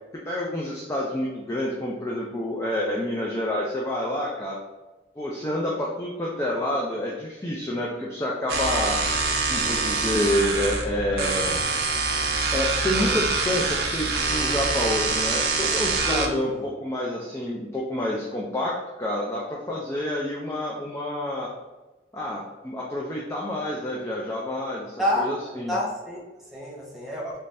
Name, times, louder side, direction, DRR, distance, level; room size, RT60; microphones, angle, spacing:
voice 1, 0.3-4.6 5.2-9.0 9.5-11.6 12.5-21.5 22.1-25.8, left 1 dB, 15° left, -4 dB, 0.4 m, -28 dB
sound 1, 8.5-16.3, right 3 dB, 70° right, 0.5 m, -25 dB
voice 2, 16.0-16.7 25.0-25.3 25.7-26.2 26.5-27.3, left 1 dB, ahead, -5 dB, 0.8 m, -28 dB
3.2 x 2.6 x 3.3 m, 1.2 s
head